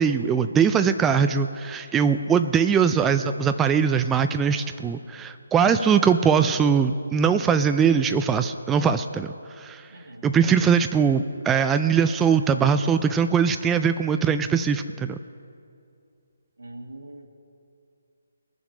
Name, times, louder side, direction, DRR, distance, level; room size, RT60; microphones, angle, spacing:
voice 1, 0.0-9.8 10.2-15.2, right 6 dB, 10° right, 8 dB, 0.3 m, -21 dB
voice 2, 4.9-5.3 9.9-10.3 16.6-17.3, right 1 dB, 85° right, 3 dB, 1.7 m, -43 dB
20.5 x 7.1 x 5.0 m, 2.4 s
figure-of-eight pair, 150°, 0 cm